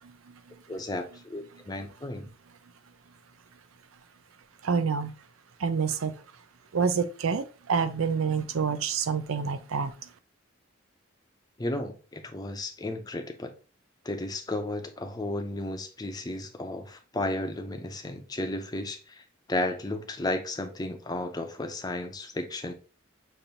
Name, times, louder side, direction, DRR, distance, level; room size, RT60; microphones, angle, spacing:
voice 1, 0.7-2.3 11.6-13.5 14.0-22.7, left 1 dB, 20° left, 0.5 m, -33 dB
voice 2, 4.6-5.1 5.6-6.1 6.7-9.9, right 5 dB, 85° right, 0.5 m, -27 dB
6.7 x 2.6 x 2.8 m
head